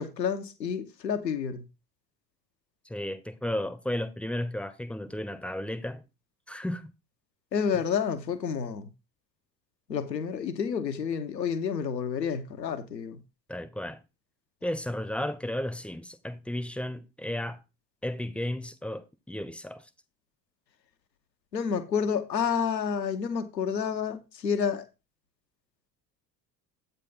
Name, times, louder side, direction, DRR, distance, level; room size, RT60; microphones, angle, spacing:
voice 1, 0.0-1.6 7.5-8.9 9.9-13.2 21.5-24.9, left 7 dB, 80° left, 1.1 m, -29 dB
voice 2, 2.8-6.0 6.5-6.9 13.5-14.0 14.6-17.6 18.0-19.8, left 1 dB, ahead, 0.8 m, -33 dB
8.3 x 4.0 x 5.6 m
figure-of-eight pair, 60°, 49 cm